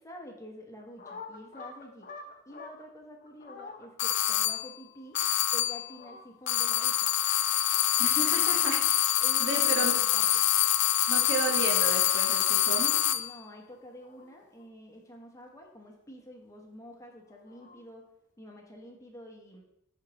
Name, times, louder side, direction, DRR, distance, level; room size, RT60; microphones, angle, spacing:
voice 1, 0.0-2.1 2.4-5.2 5.5-7.1 9.2-10.5 12.9-18.1 18.4-19.6, equal, 15° left, 1 dB, 1.0 m, -48 dB
sound 1, 0.8-2.8 3.2-3.9 5.5-6.2 7.9-8.8 9.1-9.3 11.4-12.1 13.7-14.6 17.0-17.9, left 4 dB, 40° left, 0.9 m, -49 dB
sound 2, 4.0-4.7 5.1-5.9 6.5-13.3, left 12 dB, 60° left, 0.4 m, -26 dB
voice 2, 8.0-8.8 9.0-9.9 11.1-12.9, right 3 dB, 55° right, 1 dB, 1.3 m, -33 dB
11.0 x 4.5 x 3.0 m, 0.81 s
head